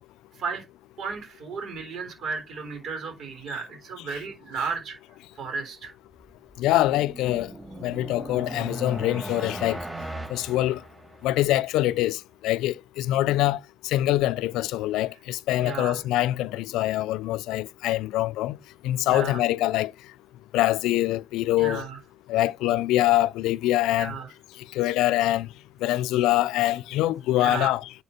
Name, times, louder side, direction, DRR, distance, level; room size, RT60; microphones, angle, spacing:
voice 1, 1.0-5.0 5.4-5.9 15.6-16.0 19.0-19.4 21.6-22.0 24.0-24.3 27.4-27.7, right 5 dB, 65° right, 3.5 m, -34 dB
sound 1, 6.3-11.5, right 1 dB, 10° right, 3.8 m, -38 dB
voice 2, 6.6-7.5 7.8-9.8 10.3-10.8 11.2-12.2 12.4-13.6 13.8-18.6 18.8-19.9 20.5-21.8 22.3-24.1 24.8-25.5 25.8-27.8, left 15 dB, 90° left, 0.3 m, -24 dB
9.8 x 4.4 x 4.2 m
supercardioid pair, 70°, 0 cm